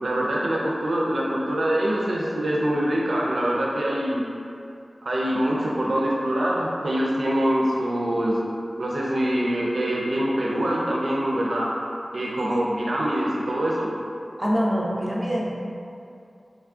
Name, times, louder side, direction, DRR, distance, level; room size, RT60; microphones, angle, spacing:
voice 1, 0.0-4.2 5.0-8.4 8.8-11.7 12.1-13.9, right 1 dB, 85° right, -4 dB, 0.4 m, -24 dB
voice 2, 12.4-12.8 14.4-15.5, equal, 10° right, -5 dB, 0.5 m, -25 dB
3.1 x 2.3 x 2.4 m, 2.5 s
wide cardioid pair, 60°, 0 cm